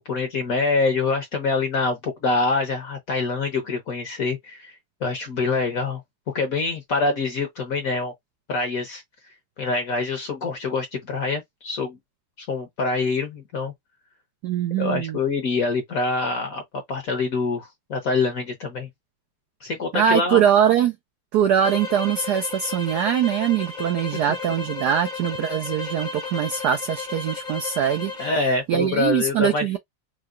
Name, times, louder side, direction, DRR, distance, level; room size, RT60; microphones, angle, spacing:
voice 1, 0.1-4.7 5.0-6.0 6.3-8.1 8.5-9.0 9.6-12.0 12.4-13.7 14.8-16.6 16.9-18.9 19.6-20.4 28.2-29.8, left 3 dB, 55° left, 1.0 m, -25 dB
voice 2, 14.4-15.2 19.9-20.9 21.3-28.1 28.7-29.8, right 9 dB, 85° right, 0.8 m, -22 dB
sound 1, 21.6-28.4, left 4 dB, 90° left, 0.4 m, -33 dB
4.8 x 2.1 x 2.5 m
omnidirectional pair, 2.3 m